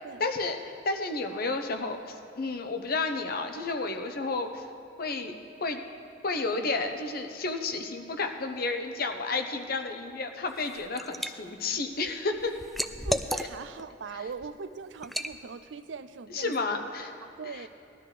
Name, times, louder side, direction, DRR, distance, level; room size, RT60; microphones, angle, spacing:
voice 1, 0.2-0.6 0.8-5.3 5.6-5.8 6.2-12.5 16.3-17.1 17.5-17.7, left 3 dB, 55° left, 6 dB, 0.9 m, -31 dB
Liquid, 10.5-11.3 11.7-13.8 14.3-14.5 15.0-15.3, equal, ahead, 0.3 m, -33 dB
voice 2, 13.0-16.7 17.2-17.7, right 5 dB, 80° right, 13 dB, 0.5 m, -41 dB
19.0 x 12.5 x 3.3 m, 2.4 s
head